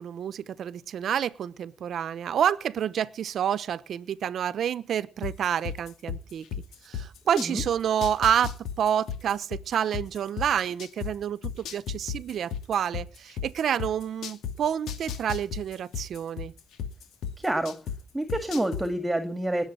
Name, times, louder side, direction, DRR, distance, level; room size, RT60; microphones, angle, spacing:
voice 1, 0.0-6.4 6.8-16.5, right 9 dB, 65° right, 0.9 m, -28 dB
sound 1, 5.2-7.7 8.0-11.1 11.4-14.5 14.9-18.0 18.3-18.8, left 8 dB, 80° left, 2.5 m, -33 dB
voice 2, 17.4-17.7 18.1-19.7, right 1 dB, 10° right, 2.1 m, -28 dB
19.5 x 7.3 x 8.9 m
cardioid pair, 90°, 0 cm